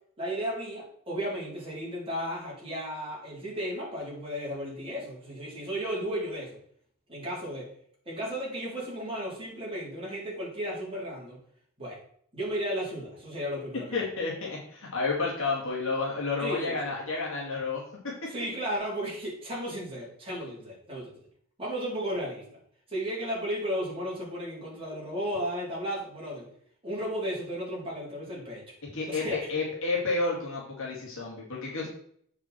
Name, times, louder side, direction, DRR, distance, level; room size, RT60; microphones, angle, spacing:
voice 1, 0.2-6.6 7.1-7.7 8.1-11.4 11.8-12.0 12.3-14.1 16.4-16.8 18.3-21.1 21.6-22.4 22.9-26.5 26.8-28.6 29.1-29.5, equal, 25° right, -6 dB, 4.0 m, -34 dB
voice 2, 13.9-18.3 28.9-31.9, left 3 dB, 65° left, -4 dB, 2.3 m, -31 dB
7.6 x 6.0 x 4.5 m, 0.63 s
head